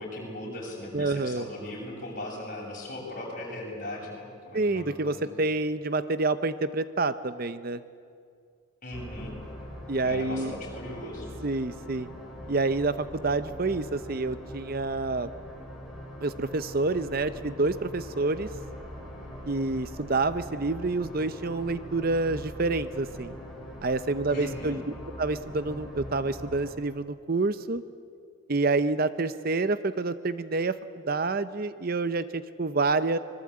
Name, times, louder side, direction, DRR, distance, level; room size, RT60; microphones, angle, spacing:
voice 1, 0.0-5.3 8.8-9.3 9.9-11.3 24.3-24.8, left 1 dB, 40° left, -2 dB, 7.7 m, -38 dB
voice 2, 0.9-1.5 4.5-7.8 9.9-10.5 11.4-12.1 12.5-15.3 16.2-18.5 19.5-23.3 23.8-24.8 25.2-27.8 28.5-30.8 31.1-33.2, right 3 dB, 45° right, 13 dB, 0.7 m, -28 dB
sound 1, 8.9-26.7, equal, ahead, 5.4 m, -42 dB
25.0 x 22.0 x 8.7 m, 2.3 s
head